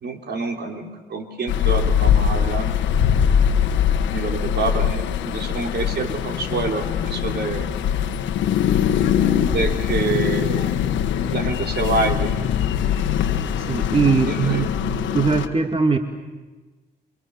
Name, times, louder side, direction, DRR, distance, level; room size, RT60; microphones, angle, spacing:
voice 1, 0.0-2.7 4.1-7.7 9.5-10.7 11.3-12.5 14.3-14.7, right 3 dB, 60° right, 4 dB, 3.6 m, -27 dB
sound 1, 1.5-15.5, left 8 dB, 85° left, 1.5 m, -22 dB
voice 2, 13.7-14.7 15.1-16.0, right 5 dB, 30° right, 6 dB, 2.1 m, -20 dB
29.0 x 24.0 x 7.0 m, 1.2 s
supercardioid pair, 55°, 19 cm